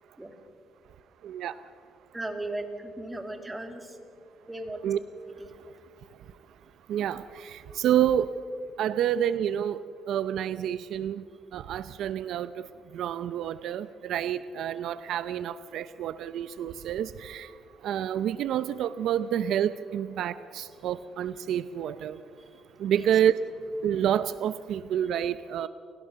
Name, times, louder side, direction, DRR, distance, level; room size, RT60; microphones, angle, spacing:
voice 1, 1.2-1.5 4.8-5.0 6.9-8.3 8.8-9.8 10.1-11.2 11.5-12.7 12.9-17.5 17.8-22.2 22.8-23.3 23.8-25.7, right 10 dB, 75° right, 15 dB, 0.6 m, -28 dB
voice 2, 2.1-4.0 4.5-4.9 22.9-23.1, right 2 dB, 10° right, 5 dB, 2.5 m, -36 dB
29.5 x 17.0 x 6.8 m, 2.4 s
cardioid pair, 115°, 0 cm